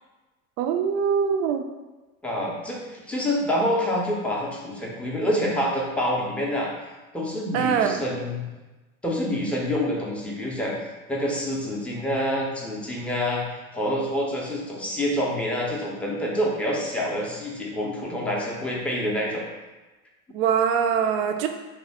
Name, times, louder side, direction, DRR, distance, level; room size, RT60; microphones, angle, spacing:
voice 1, 0.6-1.6 7.5-8.0 20.3-21.5, right 7 dB, 45° right, 6 dB, 0.4 m, -23 dB
voice 2, 2.2-6.7 7.1-8.5 9.0-10.7 11.1-13.5 13.7-19.4, equal, 5° left, -3 dB, 0.6 m, -27 dB
3.6 x 2.1 x 3.4 m, 1.2 s
figure-of-eight pair, 75°, 42 cm